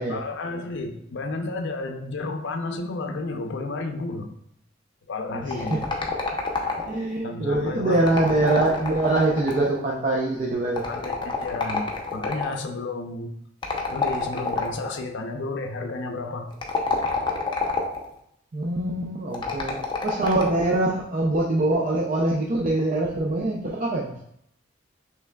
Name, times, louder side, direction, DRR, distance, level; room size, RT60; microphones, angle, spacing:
voice 1, 0.1-4.3 5.1-5.8 6.3-6.4 7.2-8.5 10.9-13.3 13.9-16.5, left 3 dB, 65° left, 5 dB, 0.5 m, -32 dB
voice 2, 5.3-5.9 6.9-10.9 18.5-19.8 20.0-24.1, right 2 dB, 40° right, -3 dB, 0.5 m, -24 dB
sound 1, 5.5-7.1 7.9-9.8 10.8-12.6 13.6-14.9 16.5-18.1 19.3-20.7, left 4 dB, 25° left, 0.6 m, -28 dB
5.7 x 3.3 x 2.2 m, 0.72 s
head